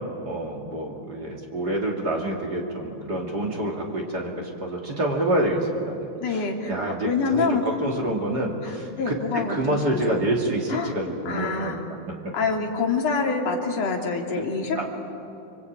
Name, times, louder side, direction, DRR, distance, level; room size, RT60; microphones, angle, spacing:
voice 1, 0.3-11.8 14.7-14.8, right 1 dB, 30° right, 0 dB, 2.4 m, -27 dB
voice 2, 6.1-6.7 7.0-7.6 8.6-10.2 10.7-10.9 11.2-11.8 12.3-14.8, left 4 dB, 45° left, 1 dB, 3.3 m, -26 dB
26.5 x 23.5 x 8.9 m, 2.7 s
omnidirectional pair, 4.6 m